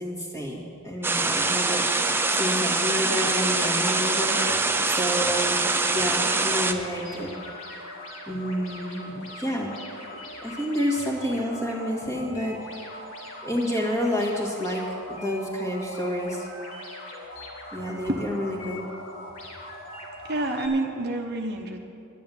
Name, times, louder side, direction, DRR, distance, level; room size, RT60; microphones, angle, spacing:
voice 1, 0.0-1.8 2.4-4.5 4.8-5.6 5.9-7.3 8.3-9.8 10.4-12.6 13.4-16.5 17.7-18.8, equal, 15° left, -3 dB, 1.9 m, -29 dB
sound 1, 1.0-6.7, right 3 dB, 10° right, 0.5 m, -24 dB
sound 2, 2.1-20.7, left 1 dB, 65° left, 2.2 m, -41 dB
voice 2, 20.2-21.8, right 2 dB, 45° right, 3 dB, 0.9 m, -28 dB
11.0 x 10.0 x 7.2 m, 2.5 s
head